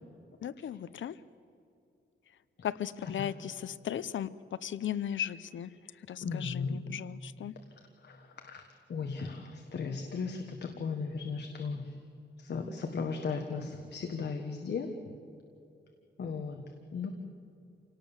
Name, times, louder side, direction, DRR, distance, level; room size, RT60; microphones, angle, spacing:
voice 1, 0.4-1.2 2.6-4.3 4.6-5.7 6.1-7.5, left 10 dB, 85° left, 17 dB, 0.7 m, -36 dB
voice 2, 6.2-6.8 8.0-8.6 8.9-11.9 12.4-14.9 16.2-16.6 16.9-17.1, left 5 dB, 65° left, 4 dB, 1.5 m, -36 dB
28.0 x 18.0 x 7.2 m, 2.7 s
wide cardioid pair, 180°, 19 cm